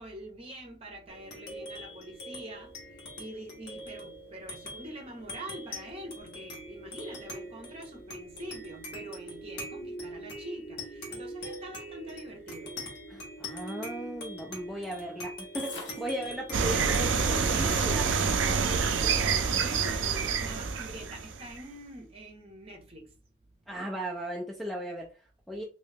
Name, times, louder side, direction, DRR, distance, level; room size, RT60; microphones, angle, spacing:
voice 1, 0.0-2.7 3.1-12.8 19.6-23.1, right 1 dB, 30° right, 1.0 m, -45 dB
sound 1, 1.1-19.9, equal, 60° left, 1.3 m, -43 dB
voice 2, 13.1-19.2 23.7-25.6, right 1 dB, ahead, 0.4 m, -37 dB
sound 2, 15.6-16.1 16.5-16.6 16.8-18.0 19.2-20.2, left 3 dB, 75° left, 1.2 m, -44 dB
sound 3, 16.5-21.6, right 5 dB, 75° right, 0.5 m, -27 dB
3.1 x 2.8 x 3.3 m
head